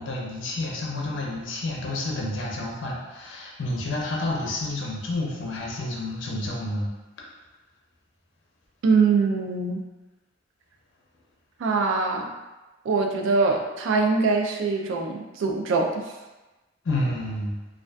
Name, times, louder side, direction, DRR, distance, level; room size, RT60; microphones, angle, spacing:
voice 1, 0.0-6.9 16.8-17.7, left 2 dB, 70° left, -2 dB, 0.5 m, -29 dB
voice 2, 8.8-9.9 11.6-12.3 12.9-16.1, right 4 dB, 75° right, 3 dB, 0.3 m, -23 dB
2.5 x 2.3 x 2.2 m, 1.1 s
head